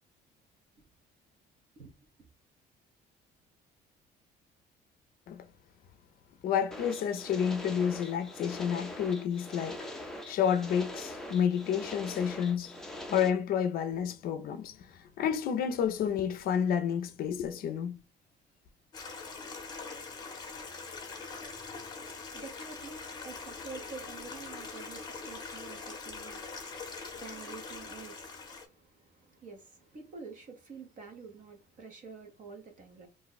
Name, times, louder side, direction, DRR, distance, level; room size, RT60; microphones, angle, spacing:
voice 1, 6.4-9.9 10.3-12.7 13.1-18.0, left 8 dB, 55° left, 0.5 m, -30 dB
sound 1, 6.7-13.3, left 1 dB, 5° left, 0.5 m, -43 dB
Stream, 18.9-28.6, left 4 dB, 25° left, 0.8 m, -43 dB
voice 2, 21.8-33.1, right 4 dB, 45° right, 0.9 m, -48 dB
2.5 x 2.1 x 3.9 m
cardioid pair, 150°, 18 cm